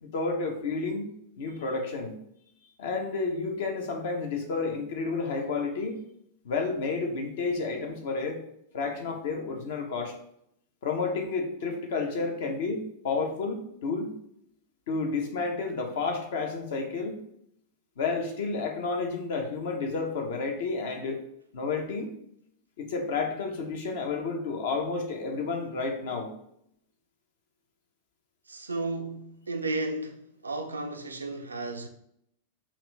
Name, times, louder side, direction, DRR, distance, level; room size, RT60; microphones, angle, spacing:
voice 1, 0.0-1.1 1.4-2.2 2.8-6.0 6.4-8.4 8.7-10.1 10.8-14.1 14.9-17.2 18.0-21.2 21.5-22.1 22.8-26.3, left 4 dB, 55° left, 0.9 m, -31 dB
voice 2, 28.5-31.9, right 2 dB, 80° right, 0.5 m, -33 dB
5.7 x 2.6 x 3.2 m
figure-of-eight pair, 90°, 0 cm